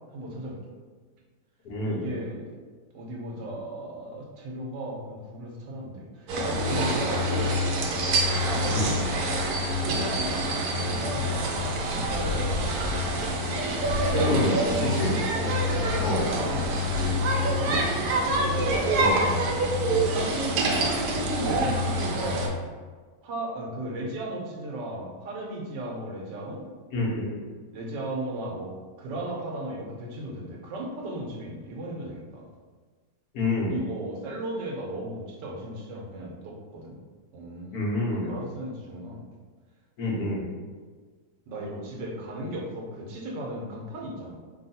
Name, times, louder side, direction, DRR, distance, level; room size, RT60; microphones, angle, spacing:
voice 1, 0.1-0.6 1.8-2.6 2.9-6.3 6.6-7.3 8.2-9.1 9.5-10.3 10.7-12.8 14.0-18.2 20.9-22.6 23.2-26.7 27.7-32.4 33.7-37.0 37.3-38.0 38.3-39.2 41.5-44.4, right 1 dB, 85° right, -2 dB, 1.4 m, -36 dB
voice 2, 1.6-2.0 8.7-8.8 14.2-15.1 16.0-16.3 18.9-19.2 26.9-27.4 33.3-33.7 37.7-38.3 40.0-40.4, left 2 dB, 65° left, -4 dB, 1.3 m, -27 dB
sound 1, 6.3-22.5, equal, 70° right, 1.0 m, -26 dB
3.3 x 2.3 x 4.0 m, 1.5 s
omnidirectional pair, 1.8 m